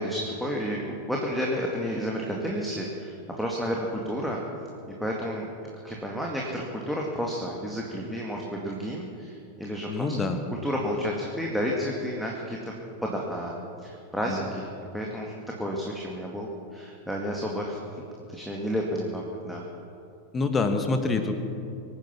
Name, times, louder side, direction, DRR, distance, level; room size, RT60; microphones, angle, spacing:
voice 1, 0.0-4.4 5.0-5.5 5.8-10.1 10.6-12.7 13.0-18.0 18.3-19.7, equal, ahead, -2 dB, 2.1 m, -31 dB
voice 2, 9.9-10.4 14.2-14.4 20.3-21.4, left 3 dB, 20° left, 7 dB, 1.7 m, -26 dB
24.0 x 9.8 x 6.1 m, 2.6 s
figure-of-eight pair, 90°, 0 cm